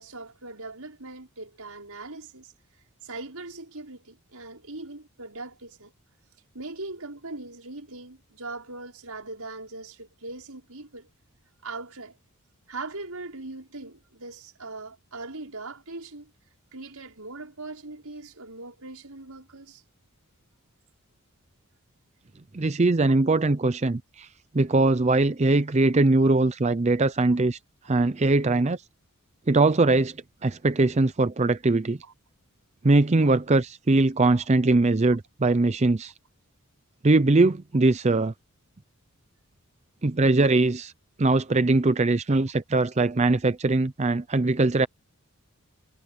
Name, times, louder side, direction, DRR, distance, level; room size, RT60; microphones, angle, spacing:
voice 1, 0.0-2.5 3.0-5.9 6.5-11.1 11.6-12.2 12.7-16.3 16.7-19.8 26.2-26.3 32.0-32.1 34.3-34.5, right 2 dB, 85° right, 5.6 m, -40 dB
voice 2, 22.5-24.3 24.5-27.6 27.9-28.8 29.5-30.1 30.4-32.0 32.8-36.1 37.0-38.3 40.0-40.9 41.2-44.9, right 2 dB, 30° right, 0.5 m, -21 dB
head